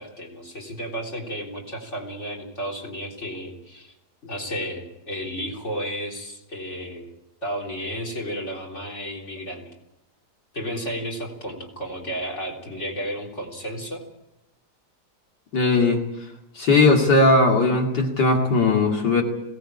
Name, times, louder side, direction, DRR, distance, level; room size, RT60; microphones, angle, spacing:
voice 1, 0.0-3.9 4.2-7.1 7.4-9.7 10.5-14.0, equal, 40° left, 0 dB, 4.1 m, -32 dB
voice 2, 15.5-16.0 16.6-19.2, left 3 dB, 85° left, 1 dB, 3.1 m, -18 dB
21.5 x 18.0 x 8.7 m, 0.91 s
omnidirectional pair, 1.8 m